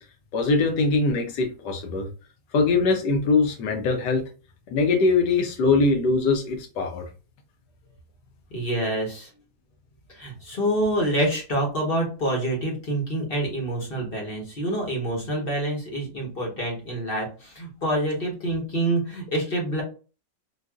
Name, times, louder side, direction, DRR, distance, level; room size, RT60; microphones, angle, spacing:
voice 1, 0.3-2.1 2.5-4.2 4.7-7.0, left 3 dB, 65° left, 4 dB, 1.3 m, -22 dB
voice 2, 8.5-9.3 10.1-19.8, right 1 dB, 40° left, -1 dB, 1.0 m, -27 dB
3.9 x 2.4 x 2.3 m, 0.34 s
omnidirectional pair, 2.1 m